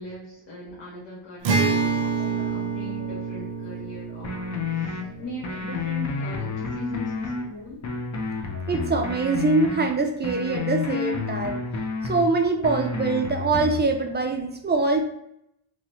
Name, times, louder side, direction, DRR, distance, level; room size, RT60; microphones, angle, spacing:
voice 1, 0.0-7.9, left 1 dB, 60° left, -6 dB, 1.2 m, -39 dB
Acoustic guitar, 1.4-6.9, right 4 dB, 65° right, 0.7 m, -28 dB
sound 1, 4.2-5.0 5.4-7.4 7.8-9.8 10.2-12.2 12.6-13.8, left 4 dB, 35° left, 0.6 m, -30 dB
voice 2, 8.5-11.6 12.0-15.0, right 3 dB, 25° right, 4 dB, 0.4 m, -24 dB
3.0 x 2.7 x 3.0 m, 0.78 s
cardioid pair, 100°, 48 cm